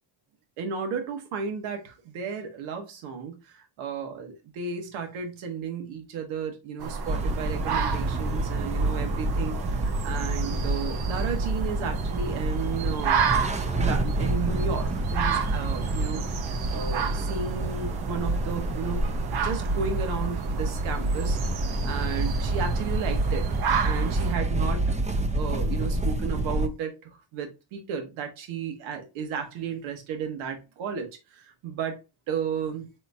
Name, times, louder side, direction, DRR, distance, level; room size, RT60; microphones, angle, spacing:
voice 1, 0.6-13.5 13.8-19.0 19.4-23.5 23.8-24.8 25.3-32.0 32.3-32.9, right 6 dB, 80° right, 1.4 m, -33 dB
sound 1, 6.8-24.3, right 6 dB, 50° right, 0.8 m, -32 dB
sound 2, 7.1-26.7, right 2 dB, 15° right, 0.5 m, -28 dB
4.3 x 3.9 x 2.6 m
cardioid pair, 100°, 47 cm